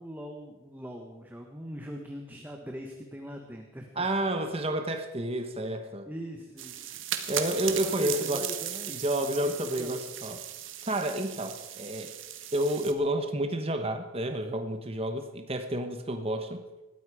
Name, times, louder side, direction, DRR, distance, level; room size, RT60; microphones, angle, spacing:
voice 1, 0.0-4.1 6.1-7.0 7.8-8.9 9.4-9.5 9.8-9.9, equal, 10° right, 2 dB, 1.2 m, -41 dB
voice 2, 4.0-6.1 7.3-8.4 8.9-10.4 10.9-12.1 12.5-16.6, right 1 dB, 25° right, 6 dB, 1.1 m, -30 dB
sound 1, 6.6-12.9, right 10 dB, 60° right, 1.5 m, -37 dB
20.0 x 14.0 x 4.9 m, 1.1 s
head